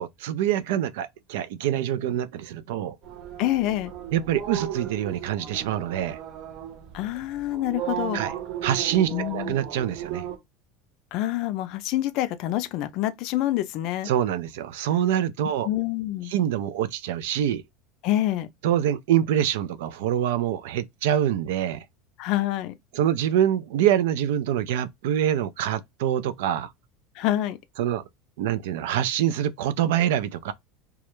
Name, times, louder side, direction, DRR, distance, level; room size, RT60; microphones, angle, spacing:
voice 1, 0.0-3.0 4.1-6.2 8.1-8.3 8.6-10.3 14.1-15.7 16.3-17.6 18.6-21.8 22.9-26.7 27.8-28.0 28.4-30.5, right 10 dB, 80° right, 0.3 m, -25 dB
sound 1, 3.0-10.4, right 10 dB, 55° right, 0.7 m, -35 dB
voice 2, 3.4-3.9 6.9-8.2 9.1-9.6 11.1-14.1 15.6-16.3 18.0-18.5 22.2-22.7 27.2-27.6, left 14 dB, 60° left, 0.4 m, -26 dB
2.3 x 2.0 x 2.9 m
supercardioid pair, 125°, 0 cm